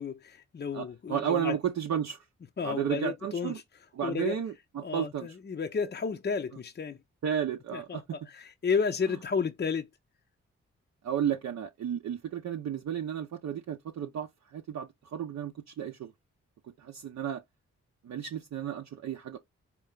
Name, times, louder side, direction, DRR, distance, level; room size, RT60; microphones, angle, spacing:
voice 1, 0.0-1.6 2.6-3.6 4.0-4.4 4.8-7.0 7.7-9.9, left 5 dB, 35° left, 0.5 m, -32 dB
voice 2, 0.7-2.2 2.6-3.6 4.0-5.3 7.2-8.0 11.0-16.1 16.8-17.4 18.0-19.4, right 9 dB, 65° right, 0.6 m, -33 dB
4.4 x 2.2 x 3.7 m
supercardioid pair, 40°, 30 cm